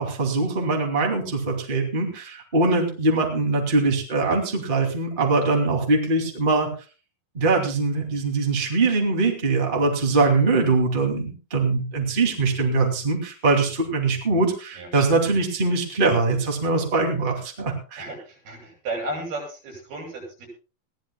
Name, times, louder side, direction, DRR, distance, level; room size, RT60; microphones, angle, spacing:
voice 1, 0.0-6.7 7.3-18.1, right 3 dB, 15° right, 2 dB, 2.2 m, -22 dB
voice 2, 18.5-20.5, right 2 dB, 85° right, 2 dB, 8.3 m, -33 dB
21.5 x 15.5 x 2.3 m, 0.35 s
omnidirectional pair, 4.3 m